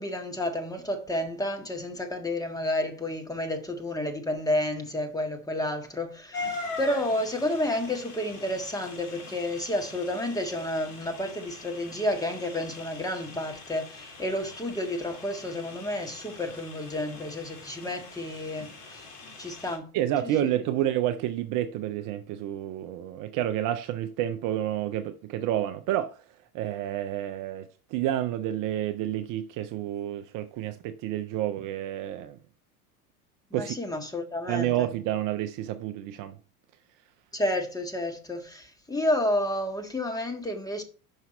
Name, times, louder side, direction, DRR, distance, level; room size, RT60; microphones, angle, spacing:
voice 1, 0.0-19.0 19.4-19.8 20.4-20.5 33.5-34.9 37.3-40.8, left 1 dB, 10° left, 1.6 m, -30 dB
sound 1, 6.3-19.8, left 3 dB, 50° left, 2.6 m, -42 dB
voice 2, 19.9-26.1 26.5-32.4 33.5-33.8 34.5-36.4, right 12 dB, 45° right, 0.7 m, -29 dB
5.8 x 5.8 x 4.2 m
hypercardioid pair, 85°, 45 cm